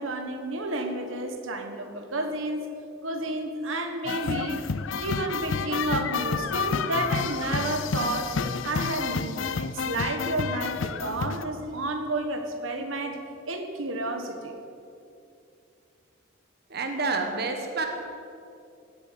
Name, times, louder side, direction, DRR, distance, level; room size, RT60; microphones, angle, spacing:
voice 1, 0.0-2.7 3.0-4.6 4.9-8.4 8.6-13.2 13.4-14.5, right 2 dB, 85° right, 5 dB, 1.4 m, -31 dB
sound 1, 4.0-11.4, left 5 dB, 75° left, 0.5 m, -30 dB
voice 2, 16.7-17.9, right 3 dB, 55° right, 4 dB, 1.3 m, -28 dB
16.5 x 8.1 x 7.5 m, 2.6 s
head